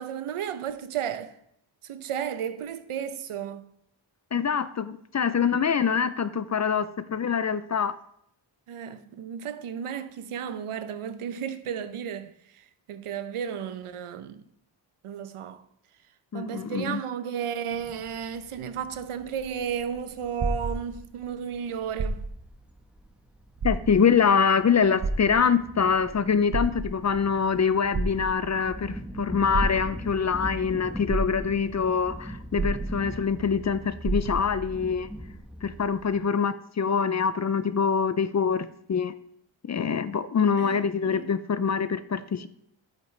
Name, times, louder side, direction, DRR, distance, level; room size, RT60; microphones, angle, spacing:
voice 1, 0.0-1.4 1.8-3.7 8.7-14.4 15.0-15.6 16.3-22.2 40.6-41.3, right 8 dB, 90° right, 0.7 m, -33 dB
voice 2, 4.3-7.9 16.3-17.0 23.6-35.1 35.6-39.1 39.7-42.5, left 6 dB, 40° left, 0.4 m, -25 dB
sound 1, 17.7-36.2, equal, ahead, 0.9 m, -42 dB
sound 2, 19.2-21.3 21.9-22.5 23.0-23.1 23.5-24.3 25.0-25.8 26.3-27.2 27.9-28.7 29.5-30.2 30.7-30.8 31.1-31.8 32.5-33.4 33.6-33.7 34.0-34.7 35.4-35.5, right 3 dB, 45° right, 1.1 m, -30 dB
9.2 x 8.3 x 3.2 m
wide cardioid pair, 115°, 49 cm